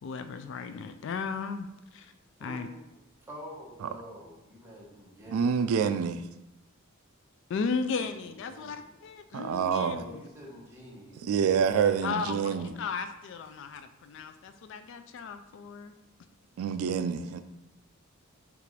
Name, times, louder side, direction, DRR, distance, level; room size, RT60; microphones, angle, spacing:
voice 1, 0.0-2.1 2.4-2.7 7.5-10.2 12.0-15.9, left 5 dB, 55° left, 10 dB, 0.3 m, -35 dB
voice 2, 2.4-3.0 3.3-5.6 8.0-8.1 8.4-8.9 9.8-12.8, equal, 10° right, -5 dB, 1.0 m, -48 dB
voice 3, 5.3-6.2 9.3-10.0 11.2-12.7 16.6-17.4, right 7 dB, 80° right, 11 dB, 0.3 m, -27 dB
6.6 x 2.5 x 3.2 m, 0.94 s
head